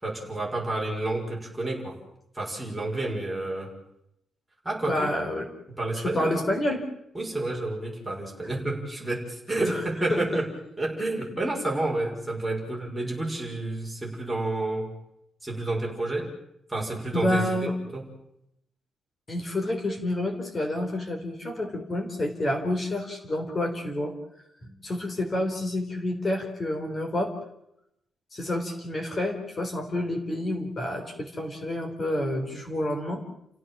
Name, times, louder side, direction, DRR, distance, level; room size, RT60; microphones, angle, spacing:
voice 1, 0.0-2.0 2.3-3.7 4.6-5.1 5.8-6.4 7.1-10.5 10.8-14.9 15.4-16.3 16.7-17.5 17.9-18.0, right 2 dB, 5° right, -3 dB, 6.0 m, -30 dB
voice 2, 4.9-5.5 5.9-6.8 9.6-9.8 10.1-10.3 17.1-17.7 19.3-24.1 24.6-27.3 28.3-33.2, left 1 dB, 25° left, 3 dB, 4.2 m, -29 dB
30.0 x 16.0 x 7.5 m, 0.79 s
cardioid pair, 170°, 0 cm